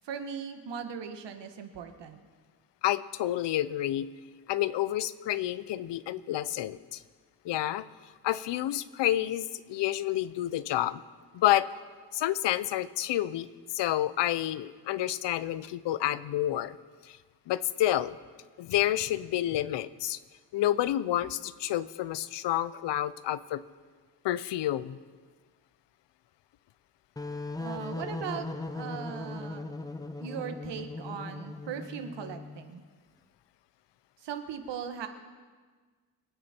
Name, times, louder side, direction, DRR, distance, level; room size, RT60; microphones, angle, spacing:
voice 1, 0.0-2.2 27.6-29.7 30.2-32.8 34.2-35.1, right 7 dB, 90° right, 7 dB, 1.5 m, -39 dB
voice 2, 2.8-4.1 4.5-7.0 7.4-7.8 8.2-11.0 11.3-11.7 12.1-13.5 13.7-16.8 17.1-17.2 17.5-18.2 18.6-20.2 20.5-23.6 24.2-25.0, left 13 dB, 85° left, 16 dB, 0.7 m, -29 dB
sound 1, 27.2-32.7, left 2 dB, 10° left, 0.4 m, -38 dB
25.0 x 9.7 x 4.4 m, 1.5 s
wide cardioid pair, 180°, 41 cm